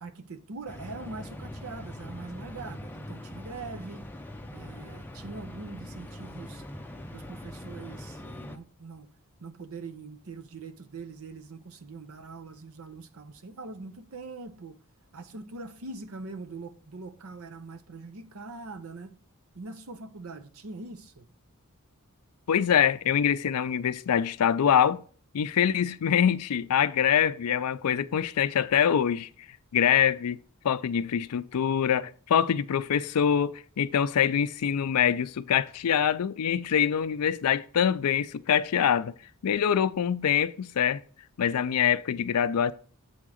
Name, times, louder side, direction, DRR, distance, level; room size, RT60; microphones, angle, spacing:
voice 1, 0.0-4.0 4.5-6.6 7.1-9.1 9.4-14.8 15.1-19.1 19.5-21.3, right 3 dB, 70° right, 0.8 m, -42 dB
sound 1, 0.7-8.6, left 1 dB, 10° left, 0.5 m, -42 dB
voice 2, 22.5-25.0 25.3-29.3 29.7-30.4 30.6-39.1 39.4-41.0 41.4-42.7, left 8 dB, 90° left, 0.4 m, -24 dB
7.8 x 3.7 x 6.3 m
head